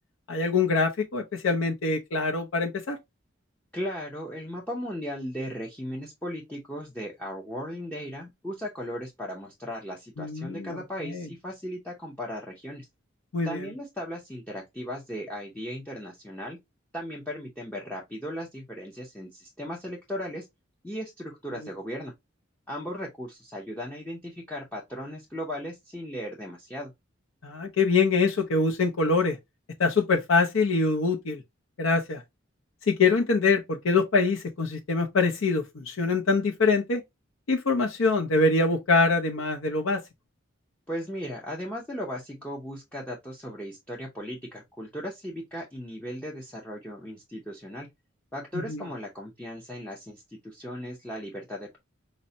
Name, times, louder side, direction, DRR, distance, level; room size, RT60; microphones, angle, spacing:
voice 1, 0.3-3.0 10.2-11.3 13.3-13.7 27.4-29.4 29.8-31.4 31.8-32.2 32.9-37.0 37.5-40.0 48.7-48.8, left 4 dB, 85° left, 0.6 m, -24 dB
voice 2, 3.7-12.9 13.4-16.6 16.9-20.5 20.8-22.1 22.7-26.9 40.9-47.9 48.3-51.8, equal, 5° left, 0.5 m, -37 dB
5.2 x 2.1 x 2.6 m
head